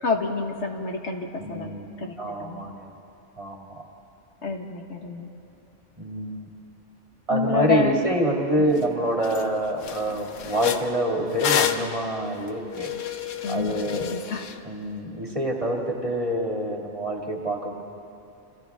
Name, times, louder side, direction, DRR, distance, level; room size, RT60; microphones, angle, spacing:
voice 1, 0.0-2.6 4.4-5.3 7.3-8.0 8.6-8.7 13.4-14.5, left 4 dB, 70° left, 3 dB, 1.7 m, -28 dB
voice 2, 1.4-2.9 3.4-3.9 6.0-6.5 7.3-12.9 13.5-14.1 14.6-17.8, right 1 dB, 25° right, 0 dB, 2.2 m, -27 dB
sound 1, 8.8-8.9 9.2-9.5 9.8-14.6, left 9 dB, 90° left, 1.2 m, -29 dB
29.5 x 27.5 x 3.6 m, 2.9 s
omnidirectional pair, 1.3 m